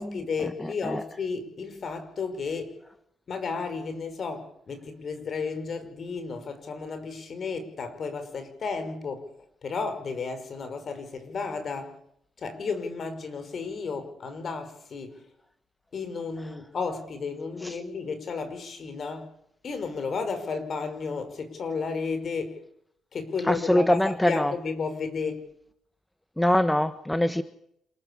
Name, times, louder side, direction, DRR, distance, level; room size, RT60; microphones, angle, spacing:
voice 1, 0.0-2.8 3.3-9.3 9.6-12.0 12.4-15.3 15.9-19.3 19.6-22.6 23.1-25.5, left 4 dB, 55° left, 5.6 m, -33 dB
voice 2, 0.6-1.0 17.6-17.8 23.5-24.5 26.4-27.4, left 1 dB, 10° left, 1.3 m, -23 dB
27.5 x 14.5 x 8.7 m
supercardioid pair, 65°, 0 cm